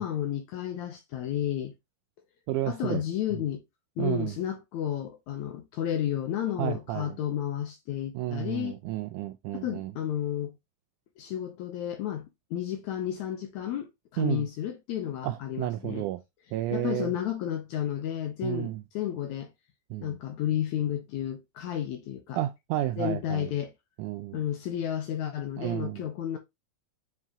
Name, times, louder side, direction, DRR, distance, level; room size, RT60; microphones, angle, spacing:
voice 1, 0.0-1.7 2.7-3.6 4.0-8.8 9.5-10.6 11.2-16.1 16.7-19.5 20.0-22.4 23.0-23.7 24.3-26.4, left 10 dB, 75° left, 1.8 m, -32 dB
voice 2, 2.5-3.0 4.0-4.3 6.6-7.2 8.2-9.9 14.2-14.5 15.2-16.2 16.5-17.1 18.4-18.8 19.9-20.2 22.3-23.5 24.0-24.4 25.6-26.0, right 14 dB, 85° right, 1.8 m, -31 dB
7.2 x 4.7 x 2.9 m
omnidirectional pair, 4.1 m